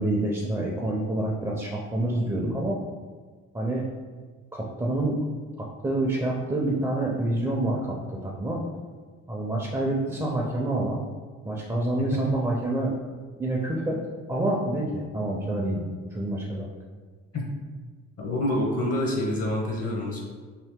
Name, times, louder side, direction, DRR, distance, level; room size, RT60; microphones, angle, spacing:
voice 1, 0.0-2.8 3.5-3.8 4.5-5.2 5.6-8.6 9.3-11.0 11.4-12.9 13.4-14.0 14.3-16.7, right 1 dB, 10° right, -2 dB, 0.4 m, -27 dB
voice 2, 18.2-20.2, left 1 dB, 50° left, -1 dB, 0.8 m, -27 dB
2.8 x 2.7 x 3.5 m, 1.4 s
cardioid pair, 90°, 30 cm